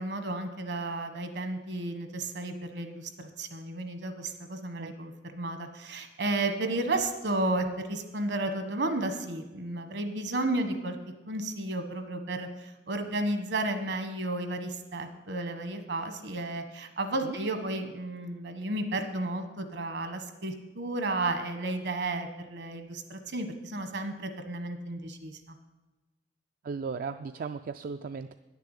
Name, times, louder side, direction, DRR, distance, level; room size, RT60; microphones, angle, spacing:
voice 1, 0.0-11.0 11.3-25.6, right 2 dB, 70° right, 7 dB, 1.3 m, -33 dB
voice 2, 26.6-28.3, right 5 dB, 50° right, 9 dB, 0.3 m, -36 dB
10.5 x 6.8 x 8.2 m, 1.1 s
head